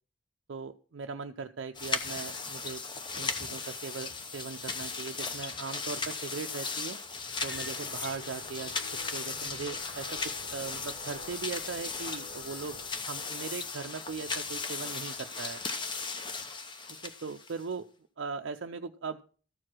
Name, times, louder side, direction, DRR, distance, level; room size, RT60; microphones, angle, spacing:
voice 1, 0.5-2.8 3.1-7.0 7.4-8.7 9.1-10.1 10.4-12.8 13.1-15.6 17.0-17.9 18.2-19.4, right 5 dB, 70° right, 5 dB, 0.5 m, -39 dB
sound 1, 1.7-17.7, left 4 dB, 25° left, 0.7 m, -37 dB
sound 2, 7.5-12.9, left 2 dB, 70° left, 1.8 m, -49 dB
14.0 x 4.8 x 6.0 m, 0.41 s
head